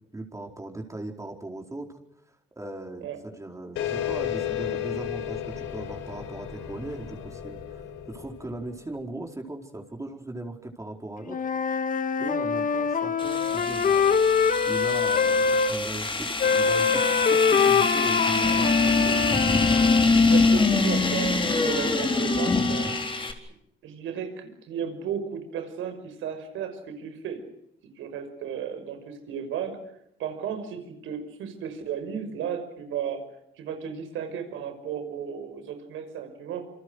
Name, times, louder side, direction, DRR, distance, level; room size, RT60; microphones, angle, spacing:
voice 1, 0.1-2.0 2.3-11.4 12.2-14.2 14.7-19.4, right 2 dB, 15° right, 2 dB, 4.5 m, -38 dB
sound 1, 3.8-8.8, left 10 dB, 90° left, 5.2 m, -33 dB
Wind instrument woodwind instrument, 11.3-15.7 16.4-20.1, left 6 dB, 40° left, 1.6 m, -24 dB
sound 2, 13.2-23.3, left 3 dB, 25° left, 4.1 m, -24 dB
voice 2, 20.3-23.0 23.8-27.4 28.0-29.8 30.2-33.2 33.6-36.7, right 8 dB, 85° right, 8 dB, 5.7 m, -34 dB
28.0 x 26.0 x 6.5 m, 0.77 s
cardioid pair, 90°, 20 cm